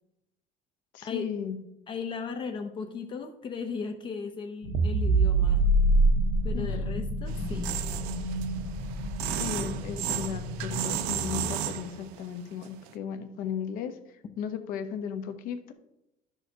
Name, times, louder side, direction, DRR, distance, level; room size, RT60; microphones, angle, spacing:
voice 1, 0.9-1.6 6.5-6.9 9.4-14.0 14.4-15.7, left 8 dB, 60° left, 8 dB, 0.9 m, -35 dB
voice 2, 1.9-5.7 6.4-7.8, left 5 dB, 30° left, 6 dB, 0.6 m, -36 dB
sound 1, 4.6-11.6, left 1 dB, 85° left, 1.6 m, -36 dB
sound 2, 4.7-9.2, right 2 dB, 35° right, 0.6 m, -25 dB
sound 3, 7.3-12.3 12.6-12.9, right 12 dB, 85° right, 0.6 m, -34 dB
11.0 x 6.3 x 2.8 m, 0.88 s
cardioid pair, 160°, 16 cm